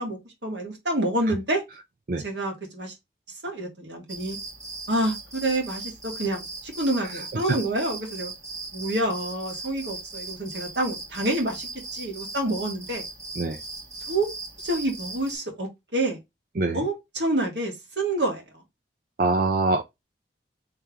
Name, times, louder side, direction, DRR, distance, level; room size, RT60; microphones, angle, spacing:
voice 1, 0.0-1.6 2.2-2.9 3.4-4.4 4.9-8.3 8.7-13.0 14.1-14.3 14.6-16.2 16.7-18.4, right 1 dB, 75° right, 1.8 m, -28 dB
sound 1, 4.1-15.4, right 3 dB, 20° right, 1.5 m, -38 dB
voice 2, 7.0-7.6 13.4-13.6 16.6-16.8 19.2-19.8, right 3 dB, 50° right, 0.5 m, -25 dB
3.3 x 3.2 x 3.5 m
head